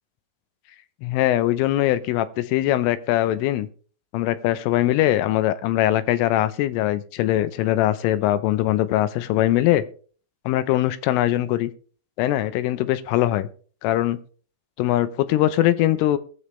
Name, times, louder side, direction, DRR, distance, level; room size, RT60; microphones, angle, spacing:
voice 1, 1.0-3.7 4.1-9.8 10.5-11.7 12.2-13.5 13.8-14.2 14.8-16.2, left 14 dB, 80° left, 3.2 m, -21 dB
20.5 x 7.2 x 3.3 m
omnidirectional pair, 5.9 m